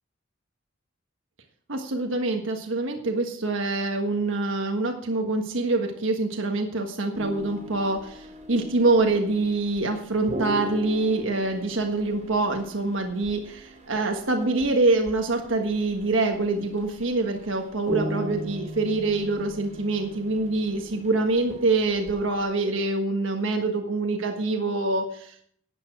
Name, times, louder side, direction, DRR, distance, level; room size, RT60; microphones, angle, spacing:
voice 1, 1.7-25.3, right 2 dB, 70° right, 3 dB, 1.4 m, -25 dB
sound 1, 7.1-22.4, equal, 35° right, 2.6 m, -39 dB
11.0 x 8.6 x 6.1 m, 0.63 s
head